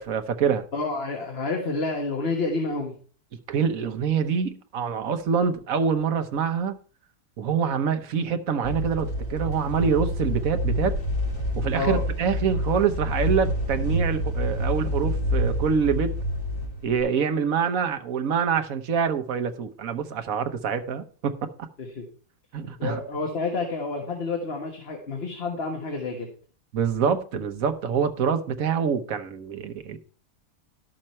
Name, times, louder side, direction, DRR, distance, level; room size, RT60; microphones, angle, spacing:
voice 1, 0.0-0.6 3.5-6.8 7.4-11.0 11.5-16.1 16.8-21.7 22.5-23.0 26.7-30.0, right 6 dB, 65° right, 1.4 m, -25 dB
voice 2, 0.7-2.9 11.7-12.0 21.8-22.0 22.8-26.3, left 3 dB, 45° left, 1.6 m, -29 dB
sound 1, 8.6-17.0, equal, 60° left, 3.4 m, -27 dB
12.0 x 6.6 x 4.4 m
omnidirectional pair, 1.6 m